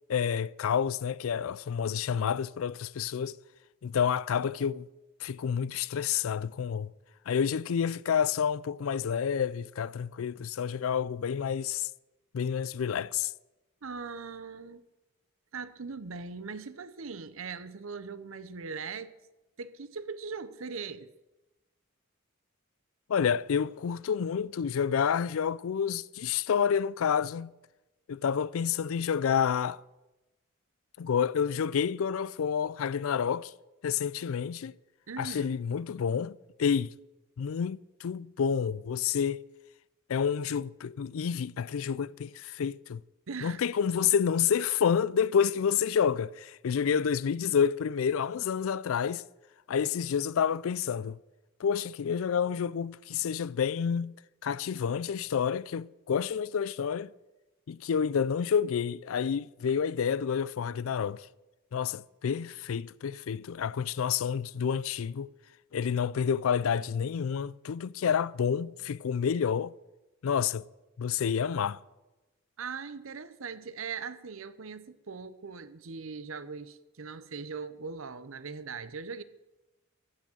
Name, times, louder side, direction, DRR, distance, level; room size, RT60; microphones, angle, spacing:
voice 1, 0.1-3.4 3.8-4.9 5.2-6.9 7.3-11.9 12.3-13.3 23.1-27.5 28.1-29.8 31.0-33.5 33.8-34.7 35.2-36.9 37.4-39.5 40.1-43.0 43.4-49.2 49.7-51.2 51.6-54.1 54.4-57.1 57.7-61.3 61.7-65.3 65.7-69.7 70.2-70.6 71.0-71.8, left 7 dB, 75° left, 0.4 m, -29 dB
voice 2, 13.8-14.8 15.5-19.1 19.6-21.1 35.1-35.5 43.3-43.6 72.6-79.2, right 5 dB, 70° right, 0.8 m, -40 dB
15.0 x 6.2 x 8.9 m
head